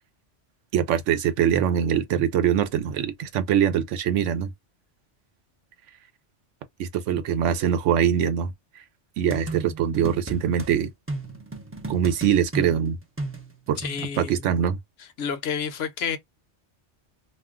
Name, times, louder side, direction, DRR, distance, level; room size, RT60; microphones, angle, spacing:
voice 1, 0.7-4.5 6.8-8.5 9.2-10.9 11.9-13.0 13.7-13.8 14.2-14.8, right 9 dB, 85° right, 0.9 m, -23 dB
sound 1, 9.3-10.7 11.1-14.2, right 2 dB, 20° right, 0.4 m, -35 dB
voice 2, 13.8-14.5 15.0-16.2, left 7 dB, 65° left, 0.8 m, -30 dB
2.4 x 2.2 x 3.5 m
omnidirectional pair, 1.2 m